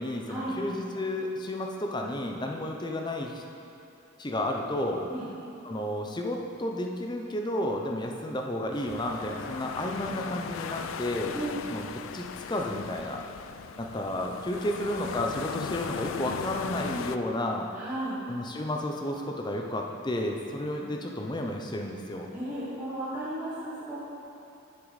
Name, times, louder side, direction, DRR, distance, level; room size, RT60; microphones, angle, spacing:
voice 1, 0.0-3.4 4.2-5.0 5.6-11.3 11.7-11.9 12.1-13.2 13.8-17.7 18.3-22.3, left 1 dB, 20° left, 1 dB, 0.6 m, -32 dB
sound 1, 8.7-17.2, left 7 dB, 70° left, 0.3 m, -38 dB
voice 2, 17.7-18.2 22.3-24.0, right 1 dB, 10° right, -11 dB, 1.4 m, -34 dB
9.5 x 6.1 x 4.0 m, 3.0 s
head